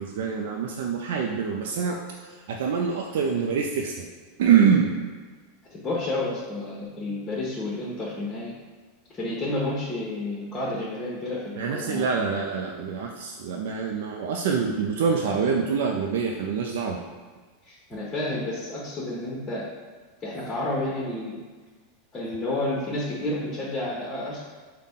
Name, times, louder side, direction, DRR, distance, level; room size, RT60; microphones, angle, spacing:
voice 1, 0.0-4.1 4.4-4.9 11.6-17.0, right 6 dB, 75° right, 0 dB, 0.4 m, -25 dB
voice 2, 5.7-8.5 9.1-12.4 17.6-19.7 20.2-21.4 22.1-24.4, left 2 dB, 25° left, -6 dB, 0.9 m, -30 dB
3.9 x 2.2 x 3.6 m, 1.4 s
hypercardioid pair, 115°, 0 cm